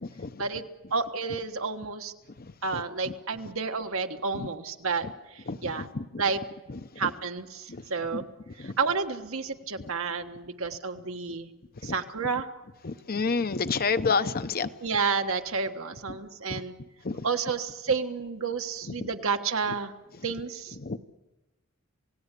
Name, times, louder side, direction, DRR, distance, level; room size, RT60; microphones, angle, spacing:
voice 1, 0.0-0.4 2.4-2.8 4.3-4.5 5.5-6.2 6.7-7.1 7.7-7.8 8.1-8.2 8.6-8.7 9.8-9.9 11.8-11.9 12.8-14.7 16.5-16.6 17.0-17.3 19.0-19.1 20.8-21.0, left 4 dB, 45° left, 11 dB, 0.8 m, -30 dB
voice 2, 0.9-2.1 2.6-5.9 6.2-6.4 7.0-8.3 8.6-11.5 11.8-12.5 14.8-16.7 17.2-19.9 20.2-20.8, right 5 dB, 75° right, 6 dB, 1.4 m, -30 dB
28.5 x 17.5 x 8.3 m, 1.1 s
head